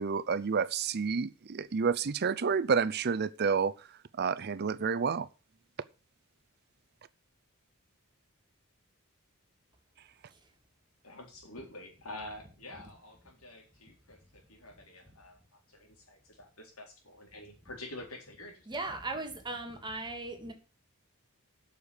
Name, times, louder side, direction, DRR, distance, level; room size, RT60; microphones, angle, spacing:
voice 1, 0.0-3.7 4.2-5.3, right 5 dB, 45° right, 0.5 m, -29 dB
voice 2, 11.0-18.7, left 1 dB, 70° left, 3.9 m, -48 dB
voice 3, 18.7-20.5, right 2 dB, 20° right, 2.0 m, -38 dB
8.4 x 6.6 x 7.1 m
head